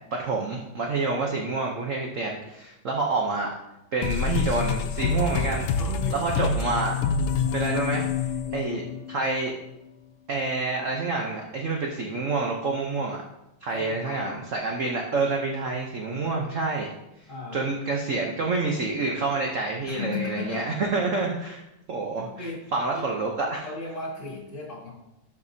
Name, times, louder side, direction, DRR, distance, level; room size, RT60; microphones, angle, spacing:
voice 1, 0.0-3.5 3.9-5.7 6.1-6.9 7.5-9.5 10.3-13.2 13.6-16.9 17.5-21.6 21.9-23.7, right 3 dB, 70° right, 0 dB, 0.7 m, -28 dB
sound 1, 4.0-9.3, left 6 dB, 90° left, 1.6 m, -27 dB
voice 2, 5.4-6.2 7.6-7.8 8.4-8.8 13.7-14.4 16.0-16.5 17.3-17.6 19.9-20.9 22.2-23.1 23.6-24.9, left 4 dB, 35° left, -4 dB, 2.3 m, -37 dB
12.0 x 5.3 x 2.7 m, 0.91 s
omnidirectional pair, 2.4 m